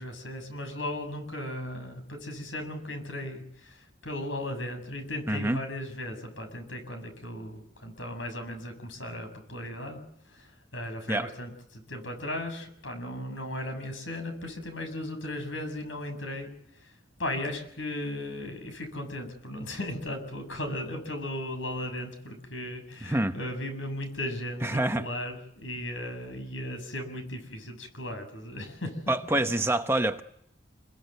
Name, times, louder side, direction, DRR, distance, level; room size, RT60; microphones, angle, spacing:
voice 1, 0.0-16.9 17.2-29.1, left 1 dB, 75° left, 7.3 m, -36 dB
voice 2, 5.3-5.6 11.1-11.3 23.1-23.3 24.6-25.1 29.1-30.2, right 1 dB, 10° right, 1.0 m, -26 dB
28.0 x 22.0 x 8.1 m
head